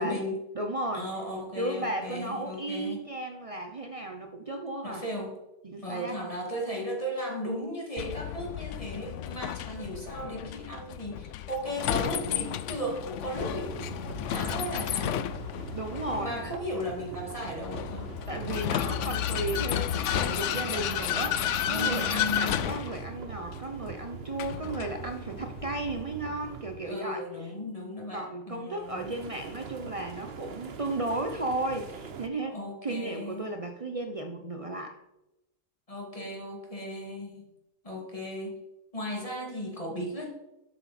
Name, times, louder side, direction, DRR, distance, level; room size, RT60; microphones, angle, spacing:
voice 1, 0.0-0.4 0.9-3.0 4.8-5.3 5.8-15.2 16.0-18.1 21.7-22.7 26.8-29.2 32.5-33.5 35.9-37.4 37.8-38.6 38.9-40.3, equal, 20° left, -1 dB, 2.5 m, -36 dB
voice 2, 0.5-1.1 1.6-5.0 5.6-6.2 15.7-16.5 18.3-27.2 28.1-35.0, right 2 dB, 65° right, 5 dB, 0.3 m, -34 dB
Vehicle, 8.0-26.0, left 11 dB, 85° left, 0.6 m, -32 dB
sound 1, 13.4-26.9 28.8-32.3, right 6 dB, 45° right, 0.9 m, -42 dB
11.5 x 8.4 x 4.2 m, 0.92 s
omnidirectional pair, 1.8 m